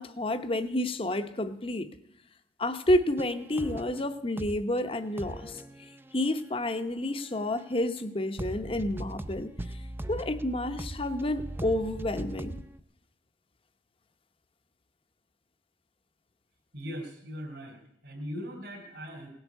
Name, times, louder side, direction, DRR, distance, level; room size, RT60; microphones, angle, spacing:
voice 1, 0.0-1.9 2.6-5.6 6.1-9.5 10.1-12.6, left 1 dB, 30° left, 9 dB, 0.8 m, -30 dB
sound 1, 2.9-4.1 4.4-4.8 5.1-7.6 8.0-8.1 8.4-12.8, right 1 dB, 15° right, 0.5 m, -40 dB
voice 2, 16.7-19.3, equal, 70° right, -3 dB, 3.5 m, -40 dB
17.5 x 8.1 x 8.3 m, 0.77 s
head